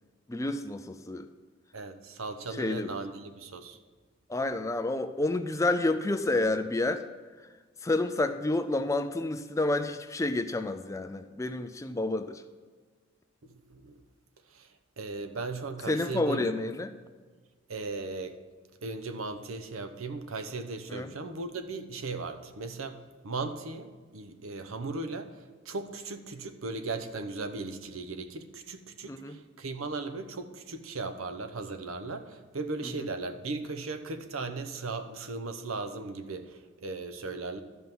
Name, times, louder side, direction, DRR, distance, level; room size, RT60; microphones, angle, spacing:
voice 1, 0.3-1.3 2.5-2.9 4.3-7.1 7.8-12.4 15.9-16.9 20.9-21.1 29.1-29.4, left 2 dB, 15° left, 9 dB, 0.4 m, -29 dB
voice 2, 1.7-3.8 13.5-14.0 14.5-14.7 15.0-16.6 17.7-18.4 18.8-37.6, right 3 dB, 85° right, 9 dB, 0.9 m, -37 dB
12.5 x 5.5 x 6.0 m, 1.4 s
head